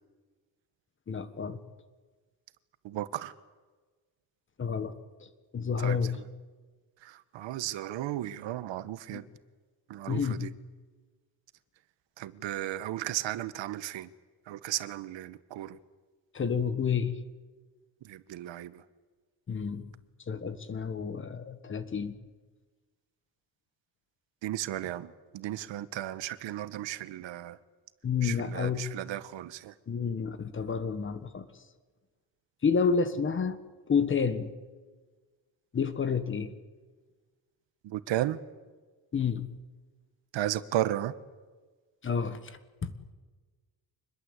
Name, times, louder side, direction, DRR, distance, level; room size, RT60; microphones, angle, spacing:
voice 1, 1.1-1.6 4.6-4.9 5.2-6.1 9.1-9.2 10.1-10.4 16.3-17.1 19.5-19.9 20.3-22.1 28.0-28.8 29.9-31.4 32.6-33.6 33.9-34.5 35.7-36.5 39.1-39.4 42.0-42.9, left 6 dB, 25° left, 11 dB, 1.6 m, -30 dB
voice 2, 2.8-3.3 5.8-6.0 7.0-9.2 9.9-10.5 12.2-14.1 14.5-15.8 18.0-18.8 24.4-27.6 28.2-29.7 37.8-38.4 40.3-41.1, right 13 dB, 80° right, 14 dB, 1.3 m, -34 dB
26.0 x 21.0 x 8.2 m, 1.3 s
cardioid pair, 175°, 44 cm